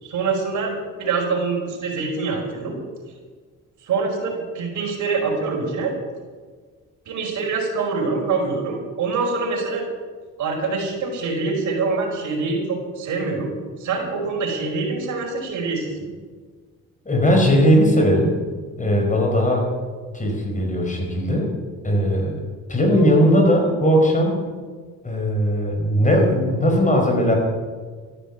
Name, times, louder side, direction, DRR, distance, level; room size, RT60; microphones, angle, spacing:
voice 1, 0.0-0.7 1.0-2.8 3.8-5.9 7.0-9.8 10.4-13.5 13.8-16.1, right 4 dB, 75° right, -1 dB, 5.1 m, -25 dB
voice 2, 17.0-18.4 18.8-19.7 20.1-21.5 21.8-24.5 25.0-27.3, equal, 25° left, 1 dB, 5.0 m, -18 dB
14.0 x 10.0 x 8.3 m, 1.5 s
cardioid pair, 90°, 30 cm